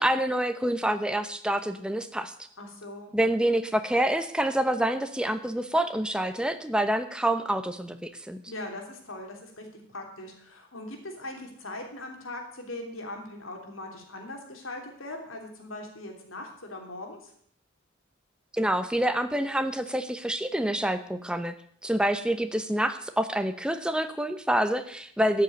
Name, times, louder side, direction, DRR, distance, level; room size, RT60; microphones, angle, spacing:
voice 1, 0.0-2.3 3.1-8.4 18.5-21.5 21.8-25.4, right 1 dB, 5° right, 9 dB, 0.8 m, -27 dB
voice 2, 2.6-3.1 8.4-17.3, left 2 dB, 85° left, 2 dB, 3.3 m, -40 dB
13.0 x 6.8 x 9.3 m, 0.64 s
head